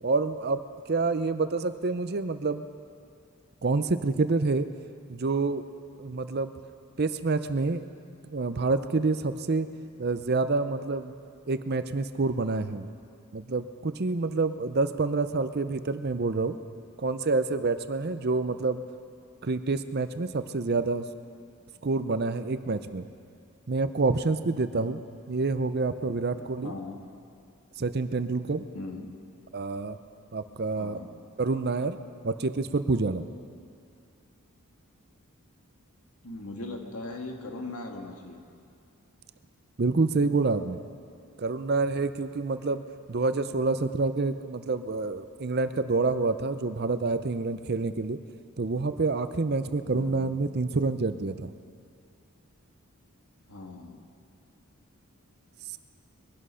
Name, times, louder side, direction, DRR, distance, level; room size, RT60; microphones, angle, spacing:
voice 1, 0.0-2.6 3.6-4.7 5.1-5.7 6.0-6.5 7.0-7.9 8.3-9.7 10.0-11.1 11.5-12.9 13.3-16.6 17.0-18.8 19.4-21.1 21.8-23.0 23.7-25.0 25.3-26.7 27.8-28.7 29.5-30.0 30.3-31.0 31.4-32.0 32.2-33.2 39.8-40.8 41.4-42.8 43.1-48.2 48.6-51.5, right 3 dB, 45° right, 11 dB, 0.6 m, -27 dB
voice 2, 25.8-27.0 28.7-29.1 30.7-31.1 36.2-38.4 49.9-50.4 53.5-54.0, left 2 dB, 85° left, 2 dB, 1.9 m, -40 dB
21.5 x 11.5 x 5.6 m, 2.4 s
head